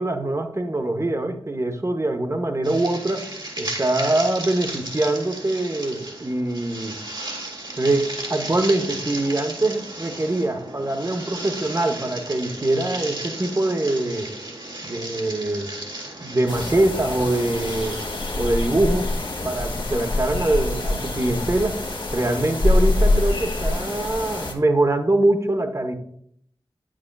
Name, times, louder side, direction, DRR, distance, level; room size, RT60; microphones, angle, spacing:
voice 1, 0.0-3.3 3.6-7.0 7.8-14.3 14.8-15.7 16.2-18.0 18.4-19.1 19.4-21.8 22.1-25.9, right 2 dB, 30° right, 6 dB, 0.9 m, -23 dB
sound 1, 2.6-18.3, right 2 dB, 60° right, 2.1 m, -35 dB
sound 2, 16.5-24.5, left 2 dB, 60° left, 1.4 m, -25 dB
8.5 x 7.4 x 2.3 m, 0.68 s
cardioid pair, 45°, 9 cm